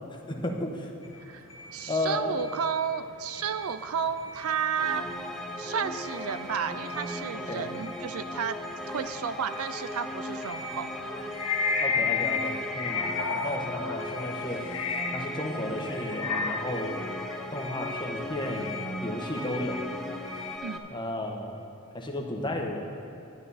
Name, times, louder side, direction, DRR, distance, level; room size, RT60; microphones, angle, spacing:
voice 1, 0.3-0.9 1.9-2.3 7.3-7.6 11.8-14.6 15.1-17.0 17.5-19.9 20.9-21.6 21.9-22.9, left 1 dB, 20° left, 1 dB, 1.2 m, -33 dB
sound 1, 1.0-20.6, left 1 dB, 65° left, 1.5 m, -44 dB
voice 2, 1.2-5.1 5.6-8.6 8.9-10.9 20.6-20.8, right 7 dB, 75° right, 11 dB, 0.5 m, -32 dB
sound 2, 4.8-20.8, left 1 dB, ahead, 0.7 m, -38 dB
sound 3, 10.9-15.5 15.9-17.5, left 5 dB, 85° left, 0.8 m, -31 dB
11.5 x 11.0 x 4.2 m, 2.9 s
head